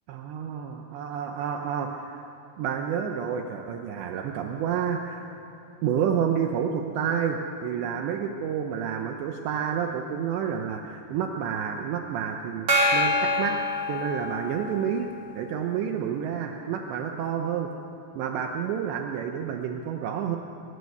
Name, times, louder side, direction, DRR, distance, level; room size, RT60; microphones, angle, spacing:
voice 1, 0.1-2.3 2.6-5.3 5.8-13.6 13.9-15.1 15.4-17.7 18.2-20.4, right 8 dB, 80° right, 3 dB, 2.8 m, -29 dB
Gong, 12.7-14.7, left 1 dB, 45° right, 1.0 m, -25 dB
23.5 x 19.0 x 6.8 m, 3.0 s
omnidirectional pair, 5.7 m